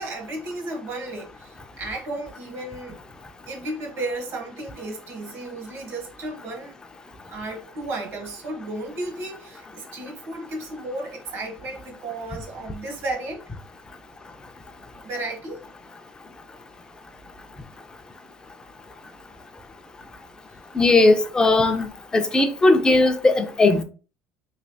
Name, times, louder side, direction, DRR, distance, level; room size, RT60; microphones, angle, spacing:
voice 1, 0.0-3.0 3.5-6.7 7.3-13.4 15.0-15.6, right 2 dB, 60° right, 1.1 m, -33 dB
voice 2, 20.8-21.8 22.1-23.8, left 2 dB, 15° left, 0.4 m, -18 dB
3.2 x 2.8 x 2.6 m
cardioid pair, 135°, 5 cm